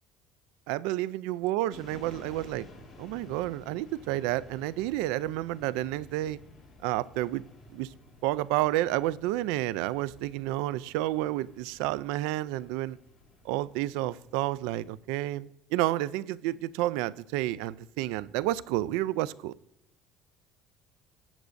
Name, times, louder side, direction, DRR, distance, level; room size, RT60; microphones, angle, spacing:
voice 1, 0.7-2.7 3.0-6.4 6.8-7.4 7.7-7.9 8.2-13.0 13.4-19.5, right 15 dB, 85° right, 0.3 m, -30 dB
sound 1, 1.7-15.0, left 1 dB, 25° left, 2.8 m, -53 dB
13.0 x 8.1 x 2.5 m
cardioid pair, 140°, 0 cm